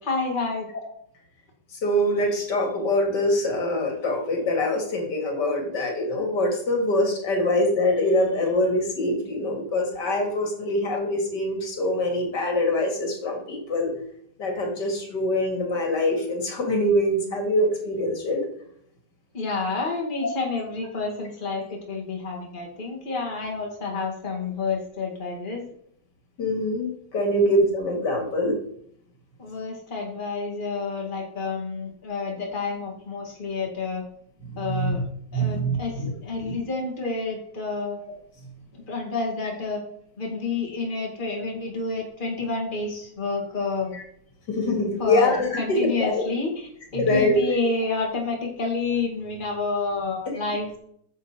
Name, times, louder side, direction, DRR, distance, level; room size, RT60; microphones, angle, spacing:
voice 1, 0.0-0.7 19.3-25.7 27.2-27.5 29.4-34.0 34.6-35.0 35.3-38.0 38.7-39.8 40.2-43.9 45.0-50.8, left 3 dB, 30° left, 0 dB, 2.2 m, -29 dB
voice 2, 1.8-13.9 14.4-18.4 26.4-28.6 34.7-34.9 35.3-36.1 36.4-36.5 44.5-46.2 47.0-47.3, left 1 dB, 80° left, 1 dB, 2.9 m, -24 dB
9.6 x 7.1 x 4.5 m, 0.67 s
omnidirectional pair, 1.8 m